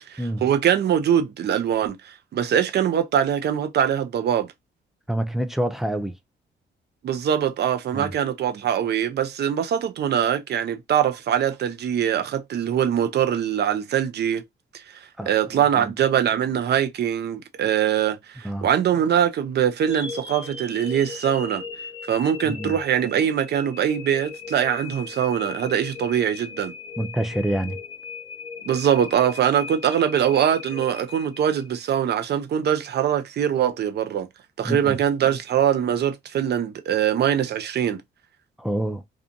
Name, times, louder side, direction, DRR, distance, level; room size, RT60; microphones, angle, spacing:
voice 1, 0.1-4.5 7.0-14.4 14.7-21.6 22.1-26.7 28.7-34.3 34.6-38.0, right 9 dB, 55° right, 0.6 m, -23 dB
voice 2, 5.1-6.1 7.9-8.1 15.2-15.9 18.4-18.7 22.4-22.7 27.0-27.8 34.6-35.0 38.6-39.0, right 1 dB, ahead, 0.4 m, -27 dB
sound 1, 19.8-32.0, left 5 dB, 25° left, 1.0 m, -38 dB
2.5 x 2.4 x 2.6 m
cardioid pair, 90°, 20 cm